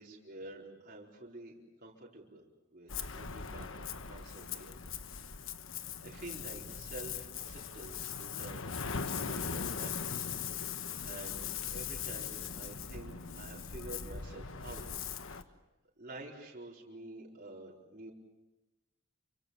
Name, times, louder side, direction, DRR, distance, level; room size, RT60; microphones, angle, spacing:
voice 1, 0.0-2.4 2.7-4.7 5.2-5.7 6.0-8.7 9.2-10.3 11.0-14.9 15.3-15.6 16.0-18.1, right 2 dB, 40° right, -4 dB, 4.5 m, -49 dB
Ocean, 2.9-15.4, left 6 dB, 65° left, 1.3 m, -40 dB
28.5 x 25.0 x 7.2 m, 1.0 s
head